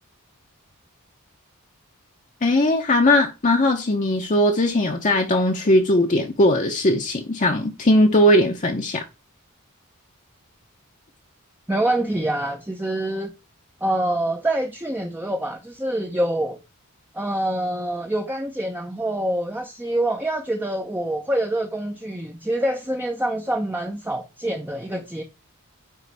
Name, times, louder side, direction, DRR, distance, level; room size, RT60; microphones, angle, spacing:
voice 1, 2.4-9.0, left 1 dB, 35° left, 0.7 m, -19 dB
voice 2, 11.7-13.3 13.8-16.6 17.1-25.2, right 1 dB, 10° right, 0.6 m, -26 dB
9.2 x 3.2 x 4.6 m
head